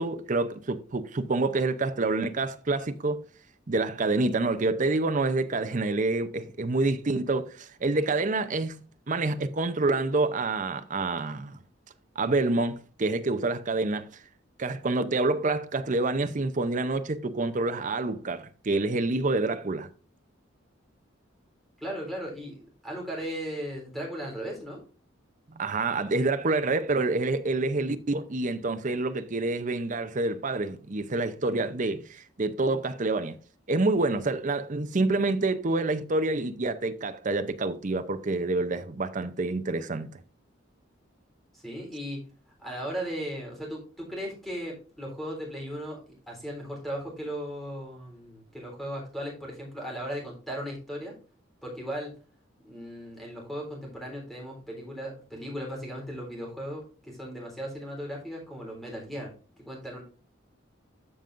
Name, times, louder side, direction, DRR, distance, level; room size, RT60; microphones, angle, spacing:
voice 1, 0.0-3.2 3.7-11.6 12.2-14.2 14.6-19.9 25.5-33.4 33.7-40.2, right 3 dB, 40° right, 0.6 m, -27 dB
voice 2, 21.8-24.8 41.5-42.2 42.6-51.1 51.6-52.1 52.6-59.3 59.6-60.0, equal, ahead, 3.5 m, -37 dB
13.0 x 5.3 x 2.5 m
head